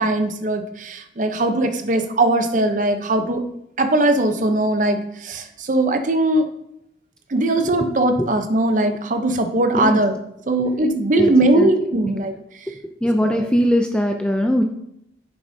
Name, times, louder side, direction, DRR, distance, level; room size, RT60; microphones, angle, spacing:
voice 1, 0.0-3.4 3.8-6.5 7.3-10.1 10.5-12.3 13.2-13.5, right 2 dB, 45° right, 7 dB, 0.7 m, -20 dB
voice 2, 11.2-11.7 12.0-12.1 13.0-14.6, equal, 5° left, 4 dB, 0.4 m, -20 dB
9.0 x 6.8 x 2.7 m, 0.77 s
head